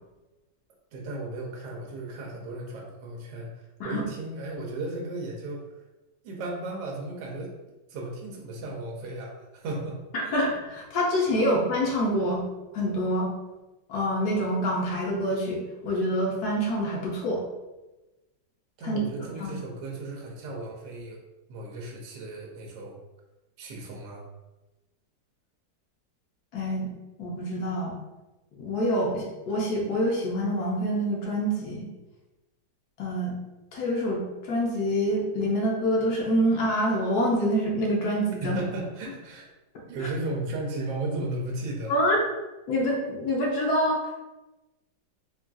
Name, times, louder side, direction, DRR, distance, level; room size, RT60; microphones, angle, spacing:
voice 1, 0.9-5.6 6.2-7.5 7.9-10.0 10.2-10.3 11.4-11.5 18.8-21.2 21.5-23.0 23.6-24.2 38.4-39.5 39.9-42.0, right 2 dB, 75° right, -1 dB, 1.2 m, -35 dB
voice 2, 10.1-12.5 12.7-13.3 13.9-17.4 18.8-19.0 19.4-19.6 26.5-26.9 27.2-27.9 28.6-31.9 33.0-33.4 33.7-38.6 40.0-40.1 41.9-42.2 42.7-44.2, equal, 65° left, -2 dB, 1.1 m, -26 dB
3.8 x 2.4 x 2.3 m, 1.1 s
omnidirectional pair, 2.0 m